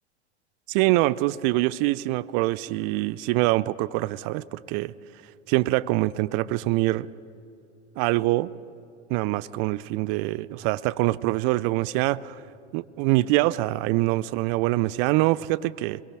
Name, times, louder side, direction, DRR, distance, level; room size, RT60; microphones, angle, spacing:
voice 1, 0.7-4.9 5.5-7.1 8.0-8.5 9.1-12.4 12.7-16.0, right 18 dB, 45° right, 20 dB, 0.6 m, -24 dB
25.0 x 22.5 x 6.2 m, 2.7 s
hypercardioid pair, 90°, 34 cm